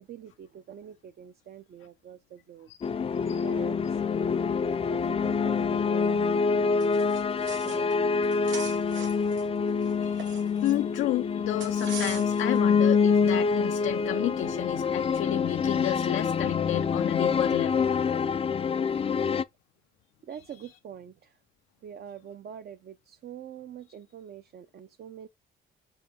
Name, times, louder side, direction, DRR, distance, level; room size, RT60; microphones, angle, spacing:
voice 1, 0.0-2.7 3.4-4.0 4.8-6.8 7.6-8.3 20.3-21.4 21.8-25.3, right 9 dB, 55° right, 0.6 m, -45 dB
sound 1, 2.8-19.4, left 5 dB, 30° left, 0.4 m, -26 dB
sound 2, 6.8-8.0 8.2-11.0 11.6-12.6, right 6 dB, 75° right, 1.6 m, -42 dB
voice 2, 9.9-17.9 18.8-18.9, left 15 dB, 85° left, 0.5 m, -32 dB
5.4 x 4.9 x 3.7 m
cardioid pair, 90°, 20 cm